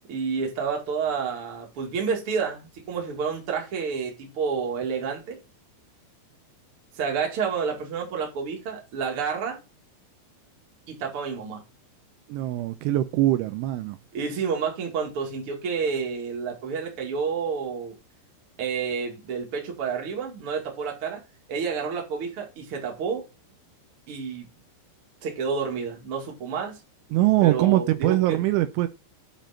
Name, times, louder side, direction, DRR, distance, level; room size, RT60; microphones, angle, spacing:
voice 1, 0.1-5.4 7.0-9.6 10.9-11.6 14.1-18.0 18.6-21.2 21.5-23.2 24.1-24.5 25.2-26.8 27.4-28.4, right 6 dB, 40° right, 2.3 m, -29 dB
voice 2, 12.3-14.0 27.1-28.9, right 15 dB, 85° right, 3.0 m, -22 dB
9.3 x 5.2 x 4.3 m
omnidirectional pair, 5.6 m